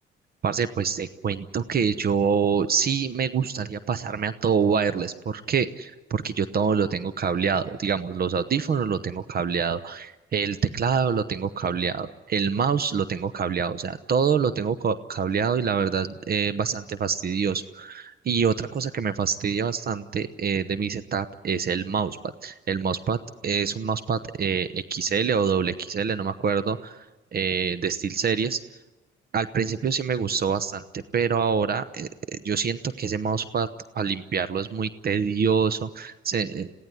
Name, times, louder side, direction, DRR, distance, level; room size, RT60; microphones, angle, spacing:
voice 1, 0.4-22.2 22.4-27.0 27.3-28.6 29.3-33.7 33.9-36.7, right 6 dB, 50° right, 13 dB, 0.9 m, -26 dB
22.0 x 16.5 x 9.8 m, 1.1 s
cardioid pair, 90°, 20 cm